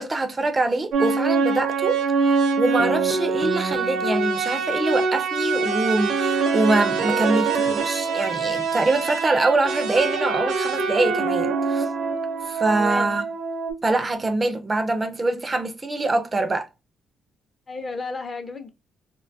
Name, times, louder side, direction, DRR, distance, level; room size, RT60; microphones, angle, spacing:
voice 1, 0.0-11.8 12.5-13.3 13.8-16.7, right 2 dB, 25° right, 0.4 m, -24 dB
sound 1, 0.9-13.7, right 4 dB, 75° right, 0.5 m, -24 dB
voice 2, 7.0-7.4 12.6-13.1 17.7-18.7, left 3 dB, 35° left, 0.5 m, -32 dB
2.7 x 2.2 x 2.6 m
cardioid pair, 90°, 0 cm